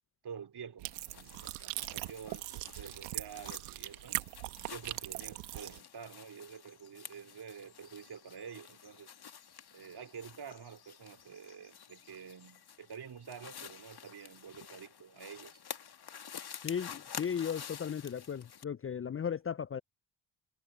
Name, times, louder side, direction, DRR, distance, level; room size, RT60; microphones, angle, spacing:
voice 1, 0.2-4.2 4.7-9.1 9.7-15.6, right 7 dB, 50° right, 3.6 m, -48 dB
sound 1, 0.8-5.8, right 24 dB, 85° right, 1.9 m, -41 dB
sound 2, 0.9-18.6, left 8 dB, 50° left, 2.4 m, -50 dB
voice 2, 16.6-19.8, left 7 dB, 30° left, 0.6 m, -36 dB
hypercardioid pair, 45°, 48 cm